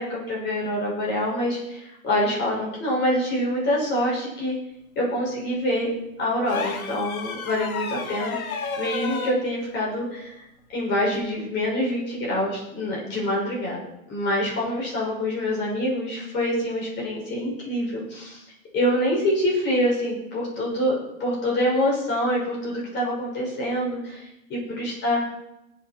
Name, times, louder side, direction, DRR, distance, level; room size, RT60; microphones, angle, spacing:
voice 1, 0.0-4.5 4.9-5.9 6.2-10.4 10.7-13.8 14.1-18.4 18.7-25.2, equal, 25° left, -3 dB, 6.3 m, -26 dB
sound 1, 6.5-9.4 11.1-11.3, left 5 dB, 80° left, 2.0 m, -32 dB
20.5 x 8.4 x 4.6 m, 0.88 s
hypercardioid pair, 140°, 42 cm